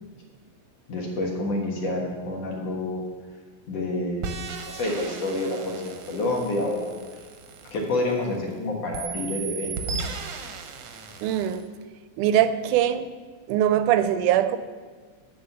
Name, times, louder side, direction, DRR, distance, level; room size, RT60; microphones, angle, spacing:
voice 1, 0.9-3.0 3.7-7.0 7.7-10.0, left 2 dB, 60° left, -1 dB, 2.4 m, -28 dB
sound 1, 4.2-8.5 8.9-11.6, right 5 dB, 70° right, 1.6 m, -36 dB
voice 2, 11.2-11.7 12.2-13.1 13.5-14.6, right 11 dB, 85° right, 12 dB, 2.1 m, -22 dB
10.0 x 5.3 x 6.7 m, 1.5 s
omnidirectional pair, 3.5 m